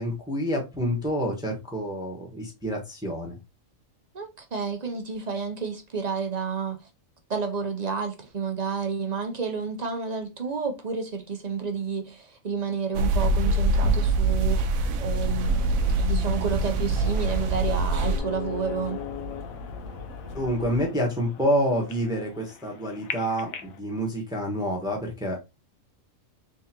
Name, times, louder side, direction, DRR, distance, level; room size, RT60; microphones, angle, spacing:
voice 1, 0.0-3.4 20.3-25.5, equal, 5° right, 1.0 m, -28 dB
voice 2, 4.1-6.8 7.3-19.0, right 5 dB, 45° right, 0.6 m, -30 dB
sound 1, 12.9-18.2, right 2 dB, 90° right, 1.0 m, -24 dB
sound 2, 15.1-20.9, left 3 dB, 65° left, 1.3 m, -40 dB
sound 3, 16.9-23.8, left 9 dB, 85° left, 1.1 m, -40 dB
3.7 x 3.5 x 2.8 m
omnidirectional pair, 1.4 m